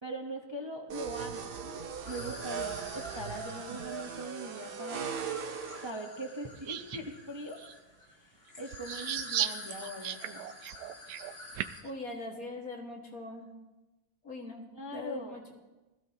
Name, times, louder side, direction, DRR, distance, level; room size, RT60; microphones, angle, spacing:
voice 1, 0.0-5.0 5.8-7.6 8.2-8.3 8.6-10.4 14.7-15.4, right 1 dB, 20° right, 1 dB, 0.9 m, -41 dB
sound 1, 0.9-5.9, right 6 dB, 50° right, 0.7 m, -39 dB
sound 2, 2.0-11.8, left 2 dB, 40° left, 1.7 m, -48 dB
sound 3, 6.7-7.0 7.6-7.7 8.7-11.9, right 11 dB, 80° right, 1.1 m, -35 dB
voice 2, 11.8-13.5 14.2-14.7 14.9-15.5, left 2 dB, 65° left, 0 dB, 2.3 m, -41 dB
19.5 x 14.5 x 2.9 m, 1.1 s
omnidirectional pair, 1.7 m